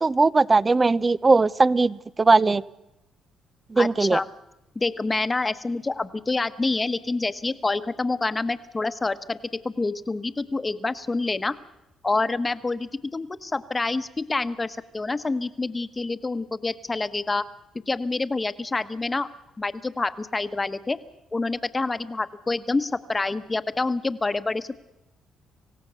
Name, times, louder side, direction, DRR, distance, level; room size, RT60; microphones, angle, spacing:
voice 1, 0.0-2.6 3.7-4.2, right 3 dB, 25° right, 19 dB, 0.7 m, -19 dB
voice 2, 3.8-4.2 4.7-11.6 12.0-17.4 17.9-19.3 19.6-21.0 21.3-24.8, left 3 dB, 20° left, 11 dB, 1.2 m, -27 dB
26.5 x 16.5 x 6.9 m, 0.91 s
cardioid pair, 90°, 0 cm